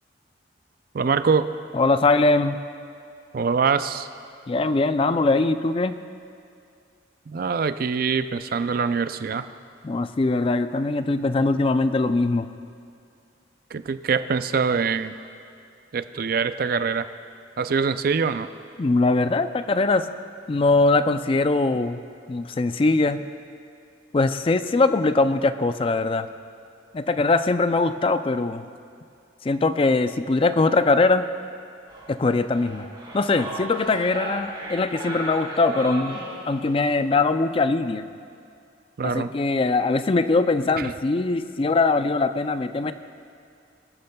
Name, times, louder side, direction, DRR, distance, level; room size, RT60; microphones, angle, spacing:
voice 1, 0.9-1.5 3.3-4.1 7.3-9.5 13.7-15.2 15.9-17.0 17.6-18.5 39.0-39.3 40.8-40.9, right 5 dB, 50° right, 11 dB, 0.4 m, -24 dB
voice 2, 1.7-2.6 4.5-6.0 9.8-12.5 18.8-20.1 20.5-22.0 22.3-23.2 24.1-26.3 26.9-28.6 29.4-31.3 32.1-32.9 33.1-38.0 39.0-42.9, left 3 dB, 30° left, 11 dB, 0.4 m, -21 dB
sound 1, 31.9-36.9, right 1 dB, 25° right, 2.4 m, -36 dB
21.5 x 12.0 x 2.3 m, 2.4 s
head